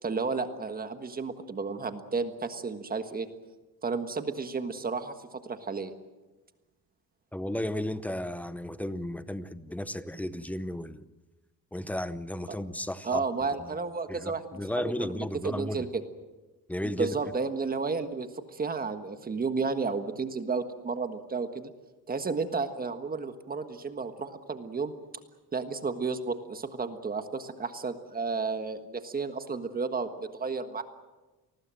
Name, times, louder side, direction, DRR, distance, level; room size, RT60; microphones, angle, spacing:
voice 1, 0.0-3.3 3.8-5.9 13.0-15.9 17.0-21.7 22.1-24.9 25.5-30.8, right 4 dB, 25° right, 1.5 m, -32 dB
voice 2, 7.3-11.0 11.7-13.2 13.6-13.7 14.1-15.9 16.7-17.2, left 1 dB, 5° left, 0.7 m, -34 dB
28.5 x 20.0 x 7.7 m
cardioid pair, 165°, 36 cm